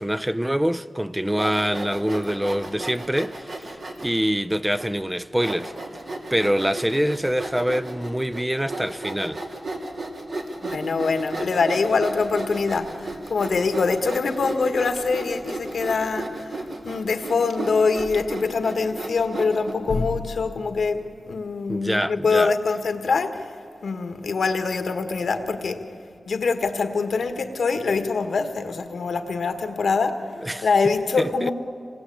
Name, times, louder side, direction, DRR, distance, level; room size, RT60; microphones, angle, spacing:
voice 1, 0.0-3.7 4.0-5.8 6.3-9.4 21.7-22.5 30.4-30.7 31.2-31.5, equal, 10° right, 0.6 m, -25 dB
Sawing, 1.3-4.2 4.8-4.9 5.4-19.7, right 2 dB, 70° right, 3.1 m, -34 dB
voice 2, 10.6-16.5 16.8-23.4 23.8-25.8 26.3-30.2 30.6-31.5, left 4 dB, 85° left, 1.6 m, -24 dB
26.0 x 19.5 x 8.6 m
wide cardioid pair, 85°, 0 cm